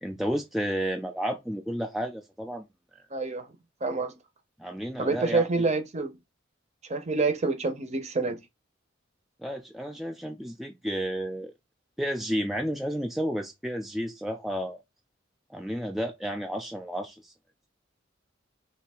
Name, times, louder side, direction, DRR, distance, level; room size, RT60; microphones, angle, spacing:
voice 1, 0.0-2.6 4.6-5.7 9.4-11.5 12.0-14.8 15.5-17.3, equal, ahead, 0.4 m, -32 dB
voice 2, 3.1-3.5 3.8-4.1 5.0-6.2 6.9-8.4, right 3 dB, 35° right, 0.7 m, -27 dB
3.3 x 2.7 x 4.2 m
head